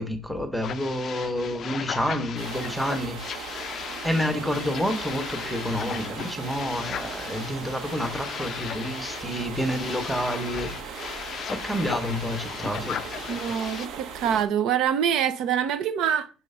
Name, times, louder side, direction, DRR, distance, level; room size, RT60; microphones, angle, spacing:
voice 1, 0.0-3.4 4.0-11.2 11.5-13.3, equal, ahead, 0.9 m, -29 dB
sound 1, 0.6-13.9, left 8 dB, 40° left, 0.4 m, -36 dB
sound 2, 2.4-14.4, right 6 dB, 85° right, 1.3 m, -38 dB
voice 2, 13.3-16.3, right 8 dB, 65° right, 0.6 m, -25 dB
4.8 x 4.5 x 5.5 m
cardioid pair, 160°, 0 cm